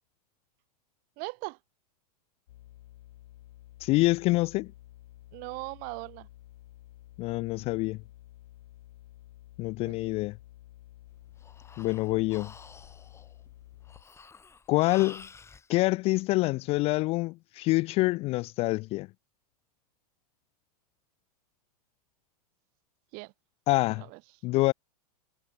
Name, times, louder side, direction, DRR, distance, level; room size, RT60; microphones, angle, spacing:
voice 1, 1.2-1.6 5.3-6.3 9.8-10.1 23.1-23.3 24.0-24.2, right 31 dB, 45° right, 3.2 m, -39 dB
sound 1, 2.5-14.0, left 15 dB, 65° left, 7.2 m, -52 dB
voice 2, 3.8-4.7 7.2-8.0 9.6-10.4 11.8-12.5 14.7-15.3 15.7-19.1 23.7-24.0 24.4-24.7, left 21 dB, 30° left, 0.3 m, -26 dB
Breathing, 11.1-15.7, left 5 dB, 15° left, 3.1 m, -50 dB
hypercardioid pair, 125°, 20 cm